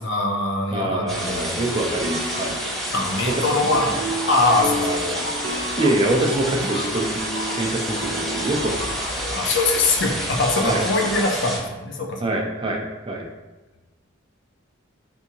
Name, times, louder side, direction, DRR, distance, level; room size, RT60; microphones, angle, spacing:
voice 1, 0.0-1.7 2.9-3.9 4.3-4.9 9.3-12.3, left 2 dB, 55° left, 2 dB, 0.5 m, -22 dB
voice 2, 0.7-2.6 3.4-3.5 3.9-4.0 4.8-5.3 5.8-7.1 7.5-9.1 10.6-10.9 12.2-13.3, right 2 dB, 25° right, 0 dB, 0.4 m, -25 dB
sound 1, 1.1-11.6, equal, ahead, 0.8 m, -29 dB
sound 2, 2.0-8.9, equal, 75° right, 0.6 m, -33 dB
sound 3, 3.0-10.1 10.3-11.3, left 2 dB, 80° left, 1.3 m, -35 dB
3.5 x 2.7 x 2.8 m, 1.1 s
head